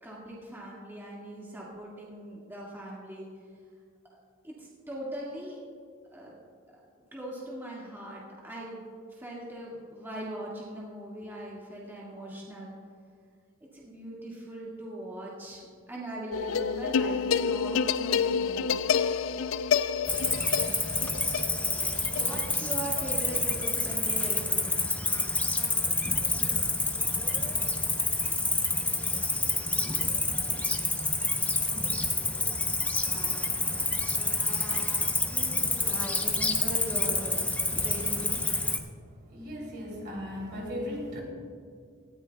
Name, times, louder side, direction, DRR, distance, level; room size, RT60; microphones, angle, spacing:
voice 1, 0.0-3.3 4.4-5.6 6.1-6.3 6.7-6.8 7.1-12.7 13.7-18.8 20.4-21.3 21.8-24.7 35.3-37.4 37.7-38.4, right 1 dB, 10° right, -5 dB, 1.9 m, -40 dB
sound 1, 16.3-23.7, left 6 dB, 70° left, 0.4 m, -29 dB
Cricket, 20.1-38.8, left 2 dB, 5° left, 0.7 m, -28 dB
voice 2, 39.3-41.2, left 1 dB, 55° right, -1 dB, 3.1 m, -36 dB
18.0 x 14.0 x 2.3 m, 2.1 s
head